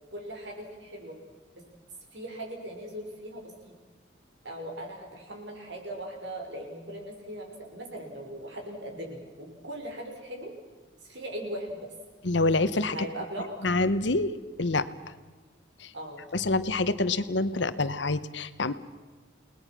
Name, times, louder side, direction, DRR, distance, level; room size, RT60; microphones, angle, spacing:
voice 1, 0.1-1.2 2.1-3.7 4.4-10.5 11.0-11.9 12.8-13.7 15.9-16.2, right 1 dB, 65° right, 2 dB, 6.0 m, -39 dB
voice 2, 12.2-13.0 13.6-14.3 14.6-14.9 15.8-15.9 16.3-18.7, left 2 dB, 65° left, 13 dB, 1.1 m, -26 dB
30.0 x 19.5 x 6.2 m, 1.3 s
head